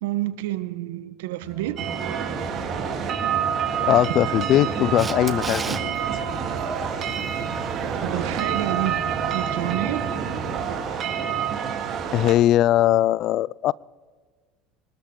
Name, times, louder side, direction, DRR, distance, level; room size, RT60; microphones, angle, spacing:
voice 1, 0.0-1.9 8.0-9.0 9.3-10.1, right 16 dB, 80° right, 14 dB, 1.0 m, -29 dB
sound 1, 1.4-9.8, right 3 dB, 15° left, 5.4 m, -40 dB
sound 2, 1.8-12.3, right 7 dB, 50° right, 3.3 m, -27 dB
voice 2, 3.8-5.8 12.1-13.7, left 13 dB, 55° left, 25 dB, 0.3 m, -20 dB
Camera, 5.0-5.8 12.5-12.6, right 4 dB, 25° right, 1.3 m, -31 dB
25.0 x 13.0 x 3.8 m, 1.4 s
hypercardioid pair, 85°, 0 cm